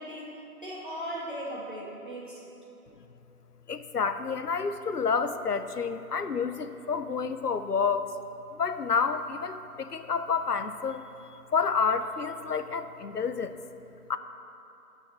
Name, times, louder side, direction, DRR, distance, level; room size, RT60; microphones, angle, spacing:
voice 1, 0.0-2.5, equal, 35° right, -6 dB, 1.7 m, -38 dB
voice 2, 3.7-8.1 8.5-11.0 11.5-13.6 14.1-14.2, left 5 dB, 80° left, 11 dB, 0.7 m, -29 dB
18.5 x 6.3 x 3.3 m, 2.9 s
figure-of-eight pair, 175°, 46 cm